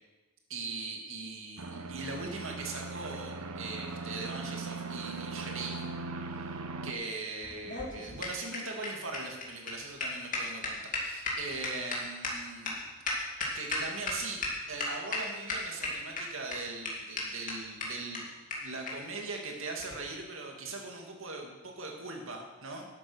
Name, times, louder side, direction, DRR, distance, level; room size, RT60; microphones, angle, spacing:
voice 1, 0.5-5.9 6.3-12.8 13.5-14.4 14.7-18.3 18.6-22.9, right 3 dB, 60° right, 1 dB, 2.2 m, -40 dB
sound 1, 1.6-6.9, right 3 dB, 75° right, 1.0 m, -39 dB
sound 2, 7.4-14.1 14.4-14.5 14.8-15.2 15.5-16.2 16.5-16.6 16.8-16.9 17.2-17.3 17.5-17.6 17.8-17.9 18.1-18.2 18.5-18.6 18.9-19.0 19.8-19.9, left 3 dB, 35° left, 2.3 m, -34 dB
11.5 x 8.6 x 6.3 m, 1.2 s
head